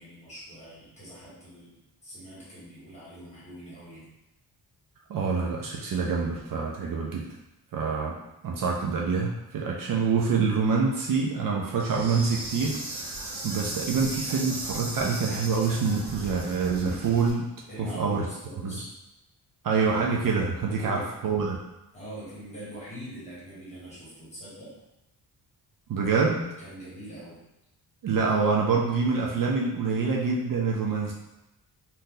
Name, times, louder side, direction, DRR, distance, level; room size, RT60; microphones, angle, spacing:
voice 1, 0.0-1.7 2.0-4.1 17.7-18.9 20.7-21.1 21.9-24.7 26.6-27.4, equal, 15° left, -9 dB, 1.4 m, -43 dB
voice 2, 5.1-7.3 7.7-8.2 8.4-17.5 17.9-18.3 18.6-18.8 19.6-21.6 25.9-26.4 28.0-31.1, right 5 dB, 55° right, -2 dB, 0.5 m, -26 dB
Insect, 11.8-17.3, right 2 dB, 90° right, 0.9 m, -36 dB
2.7 x 2.6 x 3.7 m, 0.93 s
wide cardioid pair, 160°, 40 cm